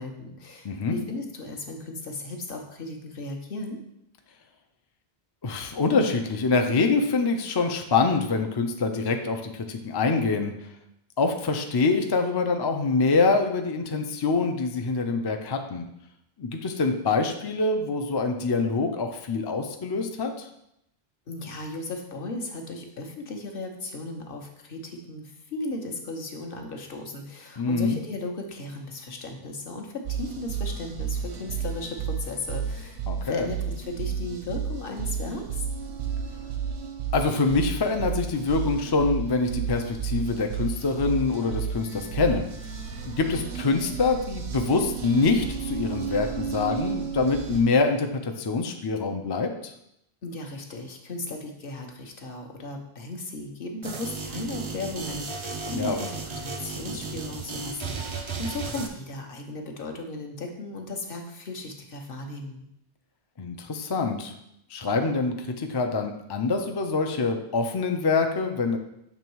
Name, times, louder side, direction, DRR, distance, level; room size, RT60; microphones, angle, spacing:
voice 1, 0.0-3.8 21.3-35.7 50.2-62.7, left 2 dB, 60° left, 3 dB, 1.0 m, -36 dB
voice 2, 0.6-1.0 5.4-10.5 11.2-15.9 16.4-20.5 27.6-28.0 33.1-33.5 37.1-42.5 43.0-49.7 55.7-56.0 63.4-64.3 64.7-68.8, left 4 dB, 40° left, 4 dB, 0.3 m, -25 dB
sound 1, 30.1-47.6, right 7 dB, 85° right, 1.0 m, -32 dB
sound 2, 53.8-58.9, right 4 dB, 40° right, 0.5 m, -34 dB
6.8 x 3.0 x 4.6 m, 0.78 s
omnidirectional pair, 1.1 m